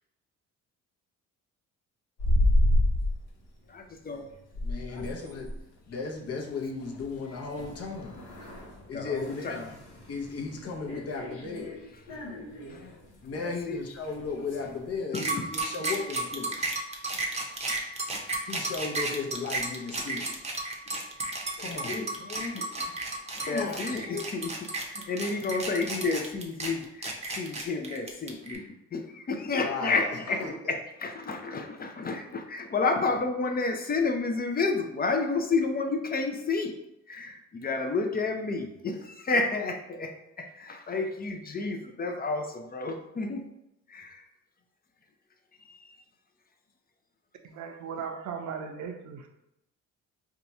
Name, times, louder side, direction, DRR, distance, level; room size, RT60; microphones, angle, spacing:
sound 1, 2.2-3.2 3.7-3.9 4.2-15.0, left 1 dB, 80° left, 1.0 m, -31 dB
voice 1, 3.7-4.2 8.9-9.7 12.7-12.9 13.4-13.8 15.1-15.5 18.3-18.4 20.0-20.1 20.9-21.0 21.6-24.5 24.9-28.7 28.9-36.7 37.1-43.4 43.9-44.3 45.6-46.0, left 3 dB, 30° left, 5 dB, 0.4 m, -31 dB
voice 2, 4.6-5.6 5.9-8.3 8.9-9.6 10.1-11.8 13.2-16.7 18.4-20.3 21.6-22.7 23.4-24.2 29.6-30.7, left 4 dB, 55° left, 1 dB, 0.8 m, -35 dB
sound 2, 15.1-28.6, right 2 dB, 20° right, 0.7 m, -33 dB
voice 3, 47.4-49.3, right 6 dB, 75° right, 5 dB, 0.6 m, -37 dB
2.8 x 2.3 x 4.1 m, 0.87 s
cardioid pair, 90°, 30 cm